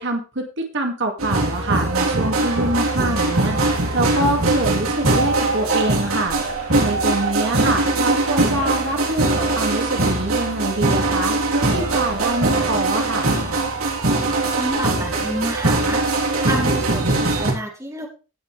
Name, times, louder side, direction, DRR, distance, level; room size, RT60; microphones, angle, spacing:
voice 1, 0.0-6.4 6.8-13.3, right 2 dB, 55° right, 3 dB, 2.3 m, -25 dB
sound 1, 1.2-17.5, right 2 dB, 80° right, 3.6 m, -21 dB
voice 2, 14.6-16.0 16.4-18.1, right 1 dB, 15° right, 0 dB, 2.9 m, -28 dB
17.5 x 7.2 x 3.4 m, 0.32 s
head